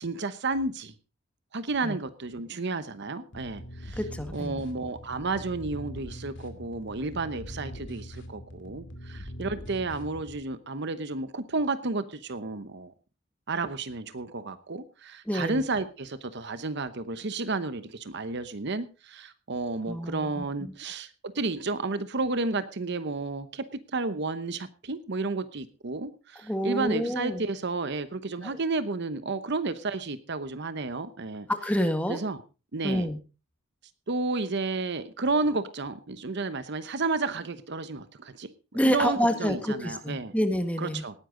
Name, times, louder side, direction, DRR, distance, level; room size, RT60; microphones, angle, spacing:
voice 1, 0.0-0.7 1.5-3.6 4.3-8.0 8.6-8.8 9.4-12.0 12.3-12.8 13.5-14.8 15.3-15.9 16.3-17.8 18.1-18.9 19.5-21.0 21.4-23.4 23.9-24.6 24.9-26.1 26.6-31.4 32.1-32.4 32.7-33.1 34.1-35.9 36.2-38.0 38.8-40.3 40.8-41.1, right 3 dB, 55° right, 12 dB, 0.9 m, -31 dB
sound 1, 3.3-10.4, equal, 60° left, 2.4 m, -42 dB
voice 2, 4.0-4.6 15.3-15.6 19.9-20.7 26.4-27.4 28.4-28.5 31.5-32.2 32.8-33.2 38.7-41.0, equal, 5° left, 7 dB, 1.6 m, -28 dB
18.5 x 10.0 x 3.8 m, 0.33 s
head